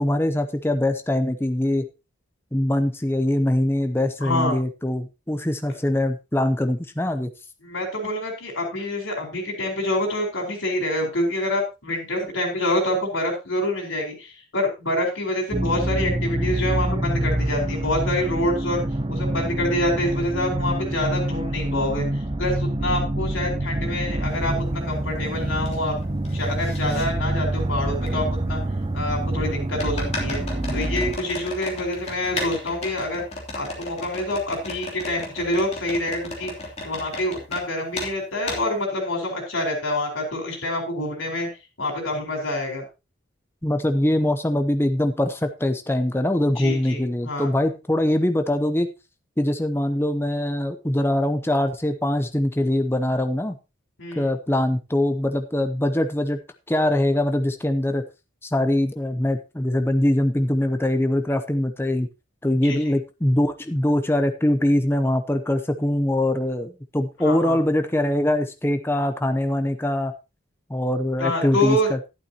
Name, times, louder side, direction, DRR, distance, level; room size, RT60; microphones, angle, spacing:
voice 1, 0.0-1.9 2.5-7.3 43.6-48.9 49.4-53.6 54.2-56.4 56.7-58.0 58.4-62.1 62.4-70.1 70.7-72.0, left 1 dB, 10° left, 7 dB, 0.7 m, -23 dB
voice 2, 4.2-4.6 7.6-18.8 19.1-22.1 22.4-25.9 26.3-28.6 28.9-30.4 30.7-33.2 33.5-36.5 36.8-41.5 41.8-42.8 46.6-47.5 54.0-54.3 62.6-62.9 67.2-67.6 71.2-71.9, left 1 dB, 80° left, 1 dB, 4.7 m, -26 dB
sound 1, 15.5-31.2, right 1 dB, 25° right, 0.7 m, -26 dB
sound 2, 24.3-24.4 24.9-25.8 26.0-27.0 28.1-28.2 29.8-37.6 37.9-38.1 38.5-38.6, left 2 dB, 30° left, 3.1 m, -35 dB
12.0 x 11.5 x 2.9 m, 0.27 s
head